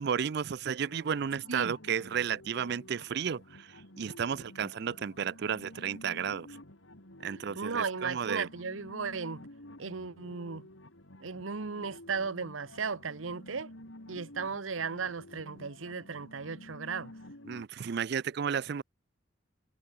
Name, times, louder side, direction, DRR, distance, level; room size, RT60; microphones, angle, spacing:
voice 1, 0.0-6.6 7.2-8.5 17.5-18.8, right 7 dB, 55° right, 0.4 m, -33 dB
sound 1, 0.9-17.6, left 1 dB, 75° left, 4.4 m, -51 dB
voice 2, 7.6-9.5 9.8-10.7 11.2-13.7 14.1-17.1, right 5 dB, 80° right, 0.9 m, -36 dB
head